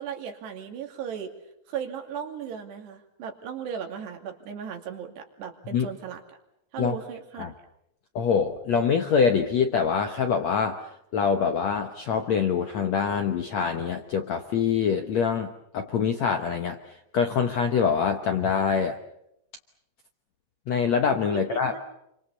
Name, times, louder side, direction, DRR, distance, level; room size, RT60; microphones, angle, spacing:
voice 1, 0.0-1.3 1.7-6.2 6.7-7.6 21.3-21.8, right 8 dB, 75° right, 3 dB, 4.6 m, -36 dB
voice 2, 8.2-16.8 17.1-19.0 20.7-21.8, left 6 dB, 70° left, 6 dB, 1.7 m, -25 dB
28.5 x 25.0 x 7.1 m, 0.82 s
omnidirectional pair, 4.8 m